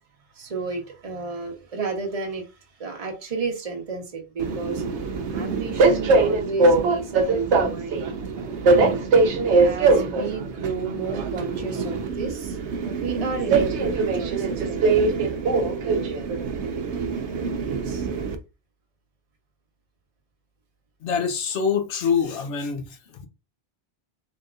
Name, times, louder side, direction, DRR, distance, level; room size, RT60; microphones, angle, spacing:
voice 1, 0.3-2.5 2.8-4.8 5.3-8.0 8.3-8.5 9.6-12.6 12.8-15.5 15.8-18.1, right 4 dB, 35° right, 0.9 m, -32 dB
Train, 4.4-18.4, right 3 dB, 80° right, 1.0 m, -22 dB
voice 2, 21.0-23.0, left 6 dB, 85° left, 1.1 m, -25 dB
3.9 x 3.5 x 2.4 m
omnidirectional pair, 1.1 m